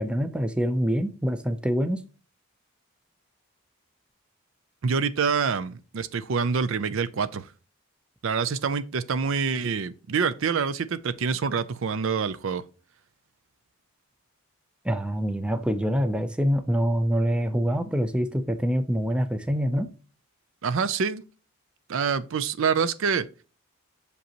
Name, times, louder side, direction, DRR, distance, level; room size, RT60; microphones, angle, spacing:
voice 1, 0.0-2.0 14.8-19.9, equal, 5° right, 0.5 m, -25 dB
voice 2, 4.8-7.5 8.2-12.6 20.6-21.2 21.9-23.3, right 5 dB, 60° right, 0.5 m, -26 dB
6.6 x 5.3 x 2.9 m
head